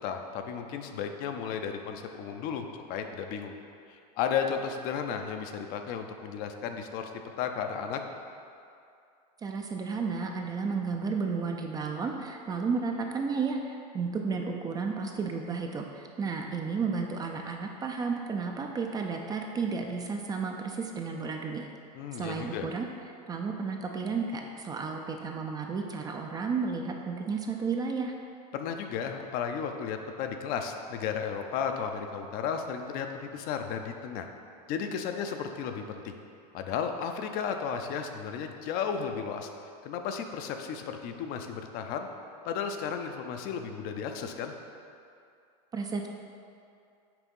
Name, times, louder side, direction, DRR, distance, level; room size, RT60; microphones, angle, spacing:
voice 1, 0.0-3.5 3.9-7.1 7.4-8.0 21.9-22.7 28.5-34.3 34.7-36.2 36.5-39.5 39.8-42.1 42.4-44.5, left 7 dB, 45° left, 5 dB, 0.5 m, -34 dB
voice 2, 9.4-21.7 22.1-22.9 23.3-28.1 45.7-46.1, right 5 dB, 20° right, 2 dB, 0.4 m, -32 dB
5.9 x 3.5 x 5.4 m, 2.5 s
supercardioid pair, 125°, 21 cm